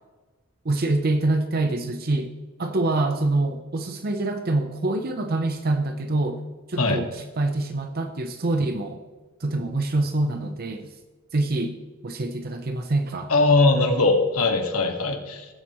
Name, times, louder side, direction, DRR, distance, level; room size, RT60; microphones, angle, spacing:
voice 1, 0.6-2.3 2.6-6.4 6.7-9.0 9.4-10.9 11.3-11.8 12.0-13.3, right 2 dB, 45° right, 6 dB, 0.7 m, -25 dB
voice 2, 13.3-15.5, left 3 dB, 85° left, 3 dB, 1.9 m, -20 dB
19.5 x 7.9 x 3.1 m, 1.4 s
head